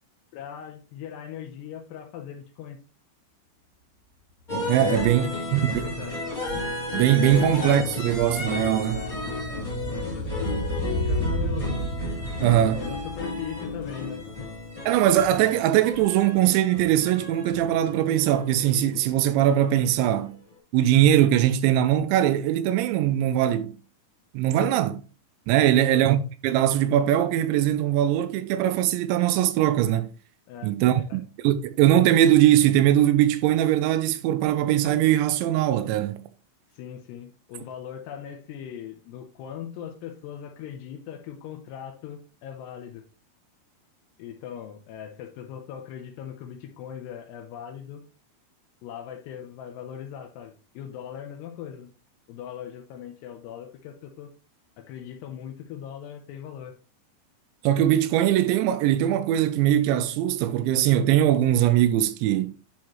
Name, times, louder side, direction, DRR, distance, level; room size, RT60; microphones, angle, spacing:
voice 1, 0.3-2.8 4.8-6.4 7.4-7.5 8.9-9.1 9.5-9.7 10.1-11.8 12.6-14.5 24.6-24.8 25.6-26.0 30.5-31.2 36.7-43.1 44.2-48.0 48.8-51.9 52.3-54.3 54.8-56.7, left 9 dB, 80° left, 2.6 m, -40 dB
sound 1, 4.5-20.3, left 2 dB, 15° left, 1.6 m, -33 dB
voice 2, 4.7-5.9 6.9-9.0 12.4-12.8 14.9-20.4 20.7-23.7 24.3-24.9 25.5-30.1 30.6-36.2 57.6-62.5, right 12 dB, 80° right, 2.8 m, -21 dB
sound 2, 5.9-15.3 15.6-15.7, right 1 dB, 50° right, 1.7 m, -33 dB
10.5 x 4.9 x 3.0 m
omnidirectional pair, 5.3 m